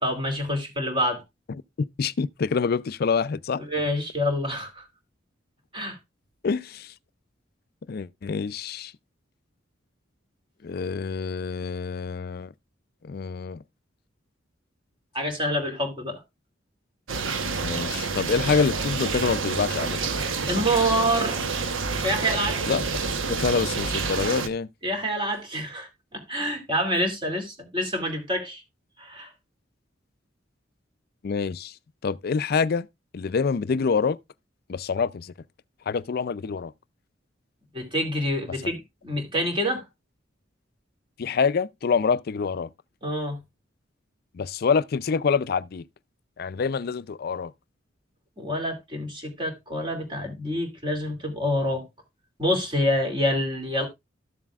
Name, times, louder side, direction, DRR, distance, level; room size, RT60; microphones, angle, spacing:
voice 1, 0.0-1.2 3.6-4.9 5.7-6.0 15.1-16.2 20.5-21.5 22.0-22.6 24.8-28.6 29.0-29.3 37.7-39.8 43.0-43.4 48.4-51.9 52.4-53.9, equal, 25° right, 2.5 m, -27 dB
voice 2, 1.8-3.6 6.4-6.9 7.9-8.9 10.6-12.5 13.0-13.6 17.6-20.1 22.7-22.8 23.3-24.7 31.2-31.7 32.0-32.9 33.1-34.2 34.7-35.3 35.9-36.7 41.2-42.7 44.3-45.8 46.4-47.5, left 5 dB, 50° left, 0.4 m, -26 dB
sound 1, 17.1-24.5, right 4 dB, 85° right, 1.0 m, -28 dB
13.0 x 7.4 x 2.3 m
head